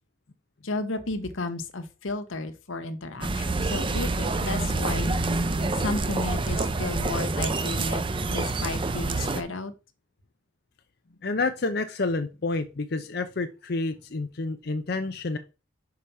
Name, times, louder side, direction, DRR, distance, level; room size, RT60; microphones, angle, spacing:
voice 1, 0.6-5.2 5.8-8.0 8.3-9.7, left 2 dB, 80° left, 9 dB, 1.1 m, -33 dB
sound 1, 3.2-9.4, right 3 dB, 25° right, 0.6 m, -27 dB
voice 2, 11.2-15.4, left 3 dB, 50° left, 7 dB, 0.6 m, -29 dB
5.7 x 4.8 x 5.5 m, 0.31 s
head